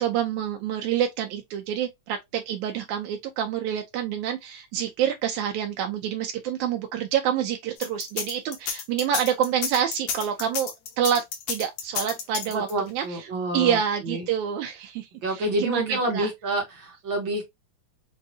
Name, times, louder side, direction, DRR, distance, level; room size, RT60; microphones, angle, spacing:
voice 1, 0.0-10.7 11.0-13.3 13.5-16.3, right 9 dB, 80° right, 2.0 m, -27 dB
sound 1, 7.8-12.9, left 7 dB, 85° left, 2.5 m, -31 dB
voice 2, 12.5-13.8 14.0-14.3 15.2-17.5, right 1 dB, 60° right, 1.3 m, -28 dB
6.2 x 2.6 x 2.7 m
omnidirectional pair, 3.5 m